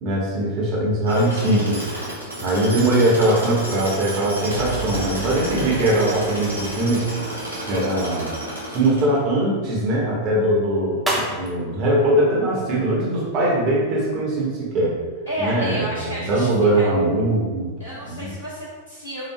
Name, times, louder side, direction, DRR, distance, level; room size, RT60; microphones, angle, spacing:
voice 1, 0.0-1.8 2.4-7.1 7.7-8.3 8.7-15.0 15.4-17.8 18.0-18.3, right 1 dB, 40° right, -5 dB, 1.1 m, -21 dB
Tools, 1.1-9.4, right 1 dB, 85° left, 1.0 m, -31 dB
sound 1, 4.5-7.1, right 3 dB, 55° right, 0.4 m, -34 dB
sound 2, 9.6-13.4, right 1 dB, 5° right, 0.7 m, -35 dB
voice 2, 15.3-16.9 17.8-19.3, equal, 65° left, -11 dB, 1.1 m, -31 dB
4.7 x 2.5 x 2.2 m, 1.5 s
figure-of-eight pair, 90°, 0 cm